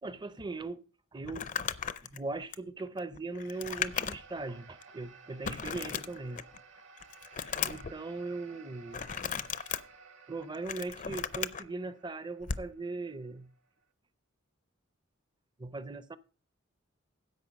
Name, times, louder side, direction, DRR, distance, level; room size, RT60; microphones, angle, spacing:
voice 1, 0.0-0.8 1.1-1.5 2.0-6.4 7.7-9.1 10.3-13.5 15.6-16.2, right 3 dB, 20° right, 0.6 m, -39 dB
Crumpling crinkling, 1.2-4.4 4.8-4.9 5.4-6.6 7.0-7.9 8.9-9.8 10.4-11.6 12.4-12.7, left 7 dB, 40° left, 0.5 m, -36 dB
sound 1, 3.3-13.8, right 4 dB, 70° right, 2.5 m, -56 dB
10.5 x 7.8 x 5.2 m
head